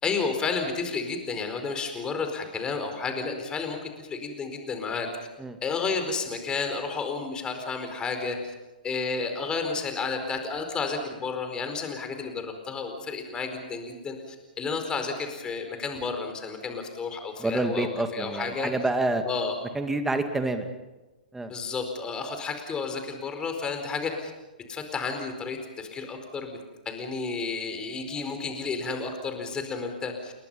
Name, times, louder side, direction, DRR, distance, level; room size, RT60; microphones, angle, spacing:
voice 1, 0.0-5.1 5.6-8.5 8.8-18.7 19.2-19.5 21.5-24.3 24.7-26.6 26.8-30.3, left 4 dB, 20° left, 6 dB, 4.6 m, -31 dB
voice 2, 17.4-19.2 19.7-20.7 21.3-21.5, right 2 dB, 5° right, 7 dB, 2.3 m, -27 dB
29.5 x 21.5 x 5.6 m, 1.1 s
figure-of-eight pair, 115°, 5 cm